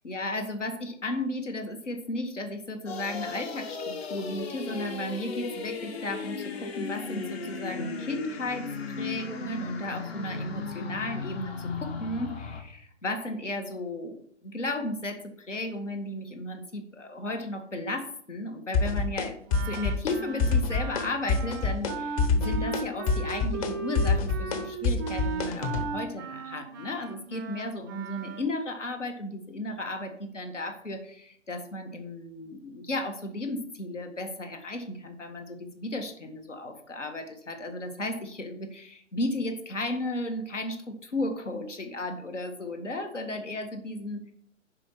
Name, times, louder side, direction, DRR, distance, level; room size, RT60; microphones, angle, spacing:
voice 1, 0.0-8.7 9.0-19.4 19.6-44.2, left 1 dB, 75° left, 5 dB, 1.8 m, -34 dB
sound 1, 2.9-12.6, left 4 dB, 55° left, 1.7 m, -36 dB
sound 2, 18.7-19.3 19.5-20.1 20.4-21.0 21.3-21.9 22.2-25.8, left 4 dB, 30° left, 1.0 m, -25 dB
Wind instrument woodwind instrument, 19.5-28.5, right 5 dB, 20° right, 0.5 m, -37 dB
9.8 x 5.5 x 4.6 m, 0.65 s
figure-of-eight pair, 125°, 36 cm